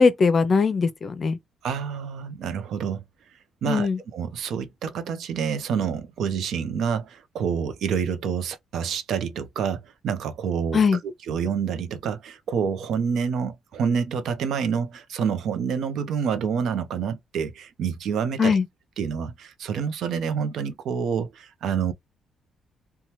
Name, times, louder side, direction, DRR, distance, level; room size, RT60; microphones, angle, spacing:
voice 1, 0.0-1.4 3.7-4.0 10.7-11.0 18.4-18.6, left 5 dB, 45° left, 0.5 m, -20 dB
voice 2, 1.6-3.0 3.6-10.8 11.3-18.5 19.0-21.9, right 7 dB, 75° right, 0.5 m, -28 dB
2.8 x 2.2 x 3.1 m
cardioid pair, 90°, 0 cm